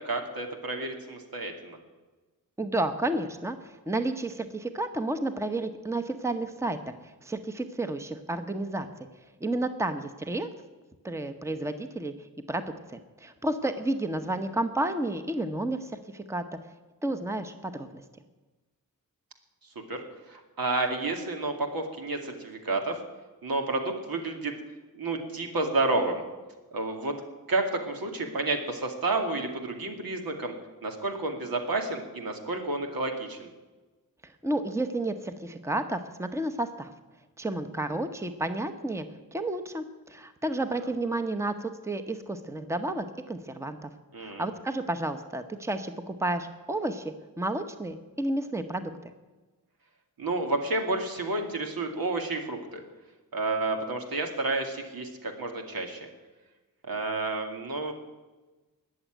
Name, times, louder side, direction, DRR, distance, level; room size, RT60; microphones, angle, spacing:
voice 1, 0.0-1.8 19.9-20.0 20.3-23.0 23.4-24.5 24.9-26.2 26.7-27.2 27.5-30.5 30.8-33.5 44.1-44.4 50.2-52.8 53.3-56.1 56.9-57.9, right 2 dB, 80° right, 3 dB, 2.4 m, -30 dB
voice 2, 2.6-3.6 3.9-9.1 9.4-10.5 11.0-12.1 12.5-12.6 12.9-16.4 17.0-18.0 34.4-36.9 37.4-39.0 39.3-43.9 44.2-48.9, right 2 dB, 10° right, 9 dB, 0.9 m, -31 dB
20.5 x 7.3 x 9.1 m, 1.2 s
wide cardioid pair, 120°, 35 cm